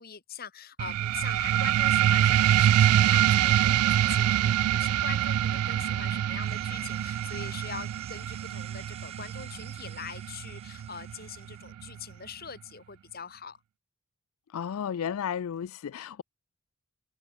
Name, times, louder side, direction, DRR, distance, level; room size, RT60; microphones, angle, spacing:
voice 1, 0.0-13.6, left 6 dB, 40° left, 1.8 m, -43 dB
sound 1, 0.8-11.8, right 11 dB, 85° right, 0.3 m, -25 dB
sound 2, 6.4-11.6, right 8 dB, 25° right, 1.3 m, -51 dB
voice 2, 14.5-16.2, left 8 dB, 70° left, 0.4 m, -33 dB
head